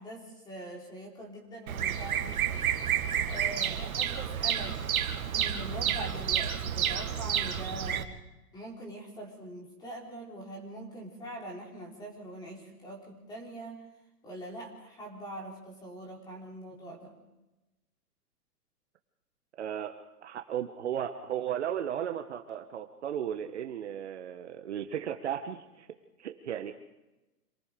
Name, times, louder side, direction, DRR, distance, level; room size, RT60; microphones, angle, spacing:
voice 1, 0.0-2.7 3.2-8.1 8.5-13.8 14.2-17.2, right 1 dB, 10° left, 0 dB, 3.7 m, -43 dB
Bird vocalization bird call bird song, 1.7-8.0, right 9 dB, 60° right, 2.0 m, -30 dB
voice 2, 19.6-19.9 20.2-25.9 26.2-26.7, right 9 dB, 45° right, 6 dB, 1.3 m, -35 dB
27.0 x 19.5 x 5.2 m, 1.0 s
hypercardioid pair, 175°, 47 cm